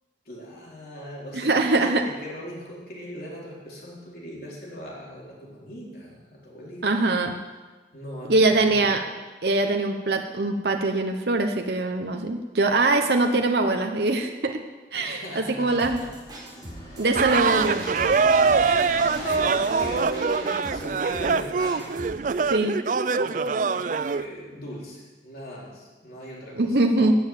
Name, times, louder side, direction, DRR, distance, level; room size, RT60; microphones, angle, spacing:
voice 1, 0.2-7.0 7.9-9.0 15.0-16.1 17.3-17.4 18.5-22.0 23.1-27.1, equal, 55° left, -5 dB, 4.2 m, -39 dB
voice 2, 1.3-2.0 6.8-7.3 8.3-9.0 9.4-14.6 14.9-16.0 17.0-17.8 22.5-22.7 26.6-27.1, right 2 dB, 60° right, 4 dB, 0.9 m, -22 dB
sound 1, 15.7-22.3, right 1 dB, 25° right, 3.6 m, -41 dB
sound 2, 15.8-21.7, equal, 15° left, 3.5 m, -40 dB
sound 3, 17.2-24.3, right 5 dB, 45° right, 0.4 m, -23 dB
14.0 x 6.8 x 9.0 m, 1.3 s
head